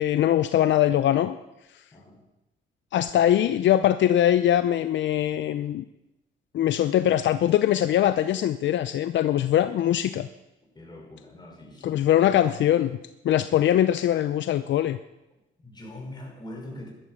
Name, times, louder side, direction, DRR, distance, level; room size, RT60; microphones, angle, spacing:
voice 1, 0.0-1.4 2.9-5.8 6.5-10.3 11.8-13.0 13.2-15.0, left 11 dB, 70° left, 12 dB, 0.6 m, -22 dB
voice 2, 1.9-2.2 10.7-12.0 15.6-16.9, left 1 dB, 20° left, 1 dB, 5.4 m, -42 dB
14.5 x 12.0 x 6.6 m, 0.96 s
cardioid pair, 90°, 20 cm